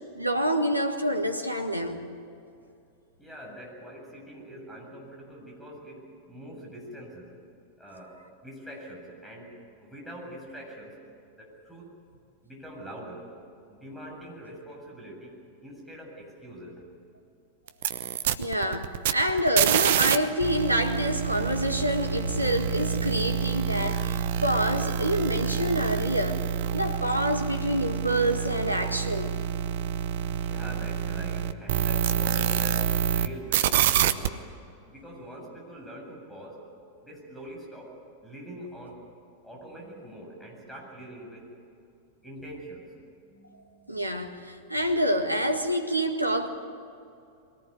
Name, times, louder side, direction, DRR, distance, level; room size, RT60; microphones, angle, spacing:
voice 1, 0.1-2.0 18.4-26.4 26.7-29.3 43.9-46.5, equal, 85° right, 5 dB, 1.8 m, -27 dB
voice 2, 3.2-7.4 7.8-11.0 11.4-11.9 12.4-13.3 13.7-15.3 15.6-16.8 30.2-34.4 34.9-36.6 37.0-39.0 39.4-41.6 42.2-42.9 43.2-44.4, right 1 dB, 5° left, -2 dB, 7.9 m, -44 dB
sound 1, 17.7-20.2 20.4-33.3 33.5-34.3, right 10 dB, 55° right, 0.9 m, -27 dB
23.0 x 18.0 x 9.7 m, 2.6 s
figure-of-eight pair, 90°, 0 cm